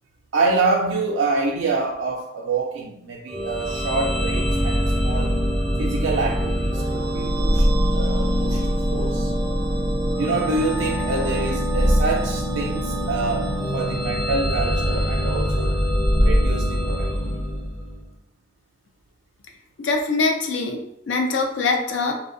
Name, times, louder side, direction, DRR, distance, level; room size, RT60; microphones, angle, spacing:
voice 1, 0.3-5.3 5.8-7.7 7.9-9.3 10.2-15.8 16.2-17.4, right 3 dB, 85° right, -1 dB, 0.3 m, -26 dB
sound 1, 3.3-18.0, equal, 5° left, 0.4 m, -23 dB
voice 2, 19.8-20.8 21.1-22.1, left 3 dB, 70° left, 3 dB, 0.4 m, -23 dB
2.6 x 2.1 x 2.5 m, 0.78 s
head